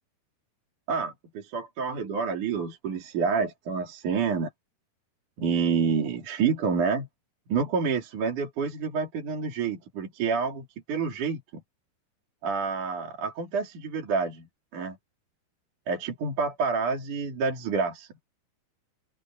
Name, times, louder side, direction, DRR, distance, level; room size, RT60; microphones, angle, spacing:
voice 1, 0.9-4.5 5.4-7.1 7.5-11.6 12.4-15.0 15.9-18.1, right 5 dB, 50° right, 4.4 m, -28 dB
open air
omnidirectional pair, 5.0 m